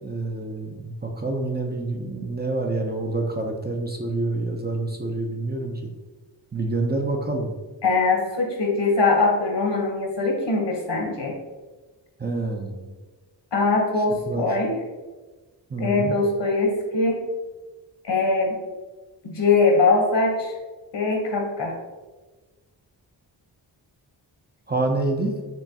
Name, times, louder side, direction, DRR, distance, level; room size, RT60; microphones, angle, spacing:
voice 1, 0.0-5.9 6.5-7.5 12.2-12.9 14.0-14.6 15.7-16.2 24.7-25.4, right 2 dB, 25° right, 2 dB, 0.5 m, -27 dB
voice 2, 7.8-11.4 13.5-14.7 15.8-17.2 18.0-18.6 19.2-20.5 20.9-21.7, left 3 dB, 70° left, 0 dB, 1.2 m, -22 dB
4.4 x 3.0 x 2.8 m, 1.2 s
cardioid pair, 65°, 45 cm